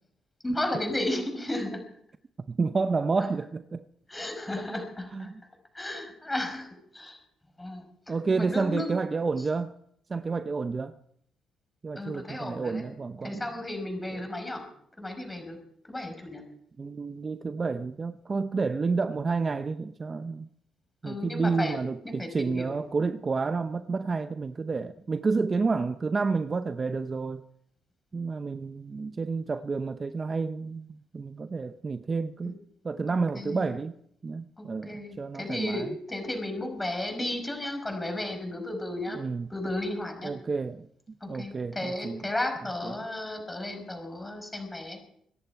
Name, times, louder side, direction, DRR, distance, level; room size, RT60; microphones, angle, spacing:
voice 1, 0.4-1.8 4.1-5.3 5.7-7.2 7.6-8.9 11.9-12.8 13.2-14.6 15.0-15.6 15.9-16.4 21.0-22.8 32.4-32.5 33.1-33.8 34.6-39.2 39.5-40.3 41.2-45.0, left 1 dB, 15° left, 5.3 m, -34 dB
voice 2, 2.5-3.8 5.1-5.3 8.1-9.7 10.1-11.0 11.8-13.5 14.1-14.2 16.8-20.5 21.0-27.4 28.1-30.9 31.1-32.6 32.8-33.9 34.2-35.9 39.1-39.5 40.2-42.2 42.8-42.9, right 4 dB, 35° right, 0.7 m, -30 dB
24.5 x 10.5 x 4.7 m
cardioid pair, 90°, 0 cm